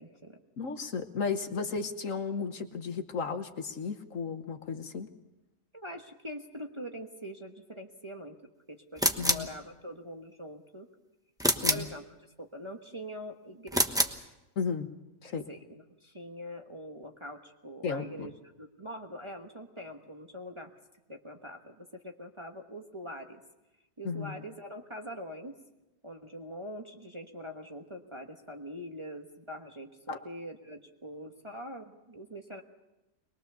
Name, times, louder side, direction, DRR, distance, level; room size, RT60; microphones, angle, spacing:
voice 1, 0.0-0.4 5.7-8.4 8.7-10.9 11.7-12.1 12.4-14.1 15.2-18.3 18.6-20.7 21.1-23.4 24.0-25.5 26.0-32.6, equal, 20° right, 2 dB, 1.2 m, -43 dB
voice 2, 0.6-5.1 9.2-9.5 11.5-11.9 14.6-14.9 15.2-15.4 17.8-18.3 24.0-24.3 30.1-30.2, left 5 dB, 60° left, 7 dB, 1.5 m, -34 dB
sound 1, 9.0-9.5 11.4-11.9 13.7-14.2, equal, 5° right, 0.9 m, -27 dB
23.0 x 21.0 x 6.9 m, 0.98 s
omnidirectional pair, 1.6 m